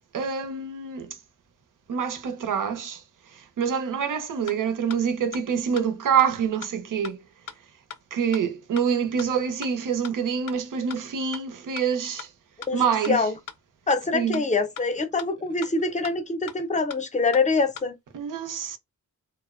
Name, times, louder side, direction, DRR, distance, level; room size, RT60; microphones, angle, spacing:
voice 1, 0.1-1.2 1.9-7.2 8.1-12.3 12.7-13.3 14.1-14.4 18.1-18.8, right 7 dB, 75° right, 0.6 m, -26 dB
sound 1, 4.1-4.2 4.5-4.6 4.9-5.0 5.3-5.4 5.8-5.9 6.2-6.3 6.6-6.7 7.0-7.1 7.5-7.6 7.9-8.0 8.3-8.4 8.8-8.9 9.2-9.3 9.6-9.7 10.0-10.1 10.5-10.6 10.9-11.0 11.3-11.4 11.8-11.9 12.2-12.3 12.6-12.7 13.0-13.1 13.5-13.6 13.9-14.0 14.3-14.4 14.8-14.9 15.2-15.3 15.6-15.7 16.0-16.1 16.5-16.6 16.9-17.0 17.3-17.4 17.8-17.9, left 8 dB, 80° left, 0.5 m, -38 dB
voice 2, 13.9-17.9, left 3 dB, 25° left, 0.5 m, -24 dB
2.6 x 2.0 x 2.3 m
wide cardioid pair, 135°, 32 cm